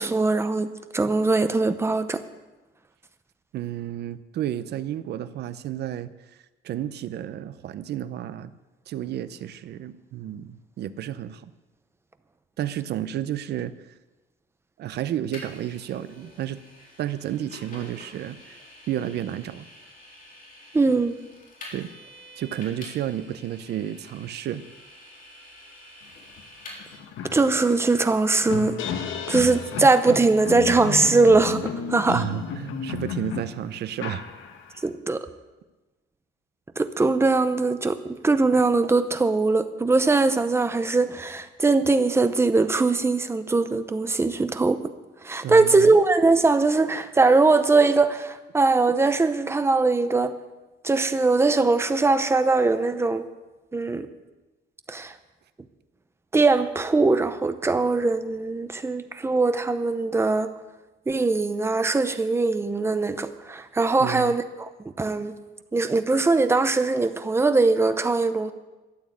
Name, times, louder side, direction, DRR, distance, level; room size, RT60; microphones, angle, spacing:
voice 1, 0.0-2.2 20.7-21.2 27.3-28.7 29.3-32.3 34.8-35.2 36.8-44.8 45.2-50.4 50.8-53.3 53.7-54.1 54.9-55.2 56.3-60.5 61.1-65.3 65.7-68.5, right 3 dB, 15° right, 10 dB, 0.7 m, -21 dB
voice 2, 3.5-6.1 6.6-8.5 8.9-11.5 12.6-13.7 14.8-16.6 17.0-18.6 18.9-19.7 21.7-21.9 22.4-24.6 32.1-34.2 45.4-46.0 64.0-64.4, right 11 dB, 55° right, 13 dB, 0.7 m, -31 dB
Vehicle, 15.3-27.0, left 1 dB, 45° left, 3.7 m, -47 dB
sound 1, 26.4-26.5 26.8-34.9, left 6 dB, 75° left, 1.4 m, -33 dB
13.0 x 8.7 x 8.6 m, 1.1 s
cardioid pair, 165°, 20 cm